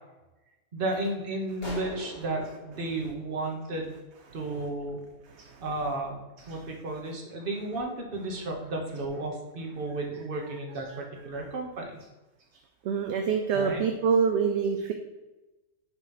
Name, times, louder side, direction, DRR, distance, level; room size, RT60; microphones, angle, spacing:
voice 1, 0.7-4.0 4.3-5.0 5.6-6.2 6.5-12.0 13.5-13.8, right 2 dB, 45° right, 1 dB, 1.2 m, -33 dB
sound 1, 1.6-4.2, left 1 dB, 35° left, 1.8 m, -43 dB
voice 2, 5.3-5.6 6.5-6.6 10.9-11.0 12.8-14.9, right 6 dB, 65° right, 5 dB, 0.8 m, -26 dB
7.0 x 3.0 x 5.7 m, 1.1 s
omnidirectional pair, 1.4 m